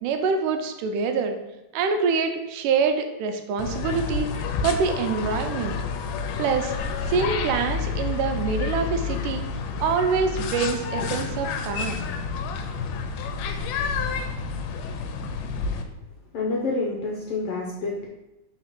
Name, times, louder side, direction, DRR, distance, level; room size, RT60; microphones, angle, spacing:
voice 1, 0.0-1.4 1.7-4.3 4.6-5.8 6.4-6.7 7.1-9.5 9.8-12.0, right 5 dB, 90° right, 6 dB, 2.3 m, -25 dB
sound 1, 3.6-15.8, left 5 dB, 90° left, 2.2 m, -29 dB
voice 2, 16.3-18.1, left 3 dB, 70° left, -2 dB, 1.5 m, -28 dB
4.6 x 4.3 x 5.8 m, 0.95 s
omnidirectional pair, 3.6 m